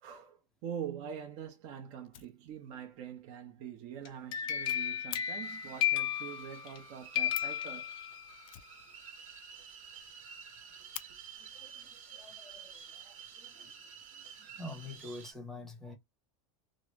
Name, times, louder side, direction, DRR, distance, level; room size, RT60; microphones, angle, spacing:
voice 1, 0.0-7.9 11.1-11.2, right 8 dB, 40° right, 0.8 m, -44 dB
Fire, 0.9-1.0 1.3-1.4 1.7-1.8 2.0-2.9 3.2-3.3 3.6-3.7 3.9-4.0 4.3-5.3 7.0-7.1 7.3-7.7 8.4-9.4 9.7-9.8 10.1-10.2 10.5-11.1 12.1-12.2 12.8-13.4, left 13 dB, 85° left, 0.5 m, -47 dB
sound 1, 4.1-6.8 7.1-8.4, left 11 dB, 25° left, 0.4 m, -34 dB
sound 2, 5.4-15.3, right 7 dB, 80° right, 1.4 m, -51 dB
voice 2, 11.4-12.7 13.0-13.2 13.6-13.7 14.1-14.2 14.6-15.9, left 2 dB, 5° left, 0.9 m, -46 dB
3.1 x 2.5 x 3.1 m
supercardioid pair, 165°, 17 cm